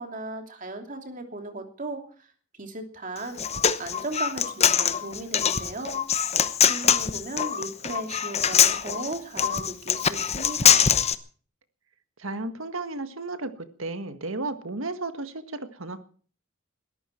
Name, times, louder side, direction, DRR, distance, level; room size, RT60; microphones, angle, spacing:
voice 1, 0.0-2.3 2.6-3.4 3.8-6.0 6.7-11.0, right 2 dB, 40° right, 5 dB, 2.9 m, -36 dB
Human voice, 3.2-11.1, left 8 dB, 30° left, 0.9 m, -23 dB
voice 2, 12.2-16.0, right 2 dB, 80° right, 10 dB, 1.7 m, -33 dB
21.5 x 14.0 x 4.5 m, 0.42 s
head